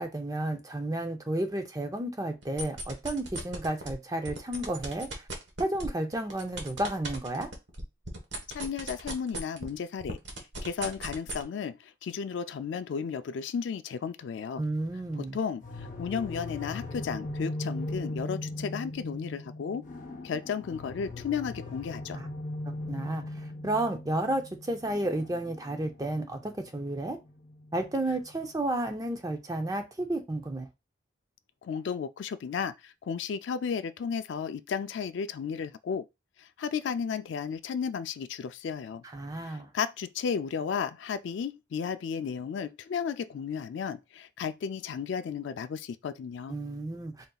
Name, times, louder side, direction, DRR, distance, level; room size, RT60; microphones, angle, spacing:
voice 1, 0.0-5.3 5.6-7.5 14.6-15.4 22.1-22.3 22.9-27.2 27.7-30.7 39.1-39.7 46.5-47.3, right 1 dB, 20° right, 0.5 m, -32 dB
sound 1, 2.4-3.9 4.2-9.7 10.0-11.4, right 2 dB, 70° right, 1.2 m, -37 dB
voice 2, 8.5-10.2 10.6-14.6 15.2-19.8 20.2-22.2 31.6-36.0 36.4-39.0 39.4-46.6, left 6 dB, 70° left, 0.3 m, -34 dB
sound 2, 15.6-28.4, left 2 dB, 40° left, 0.8 m, -39 dB
3.9 x 3.9 x 2.3 m
head